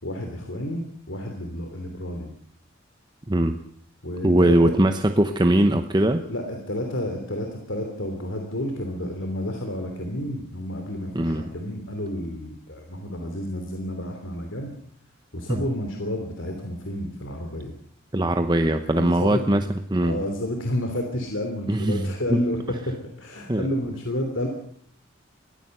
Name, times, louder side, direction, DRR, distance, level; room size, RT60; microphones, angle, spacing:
voice 1, 0.0-2.3 4.0-4.7 6.1-14.7 15.3-17.7 18.9-19.6 20.0-24.5, left 1 dB, 65° left, 4 dB, 3.2 m, -30 dB
voice 2, 3.3-3.6 4.2-6.2 11.1-11.5 15.5-15.6 18.1-20.2 21.7-22.4 23.5-23.7, right 1 dB, 20° right, 7 dB, 0.9 m, -21 dB
22.0 x 15.5 x 7.9 m, 0.63 s
head